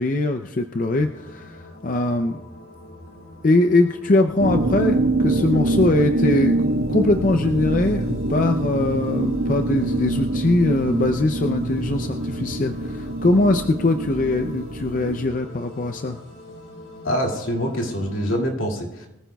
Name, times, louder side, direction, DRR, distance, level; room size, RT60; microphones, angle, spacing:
voice 1, 0.0-1.5 1.8-2.4 3.4-6.6 6.9-16.2, left 2 dB, 40° left, 6 dB, 0.5 m, -21 dB
sound 1, 0.7-18.4, left 1 dB, 60° left, 3.4 m, -44 dB
sound 2, 4.4-15.3, right 1 dB, 90° right, 1.0 m, -25 dB
voice 2, 17.0-19.1, equal, 80° left, 0 dB, 2.4 m, -25 dB
23.0 x 14.5 x 2.3 m, 0.93 s
head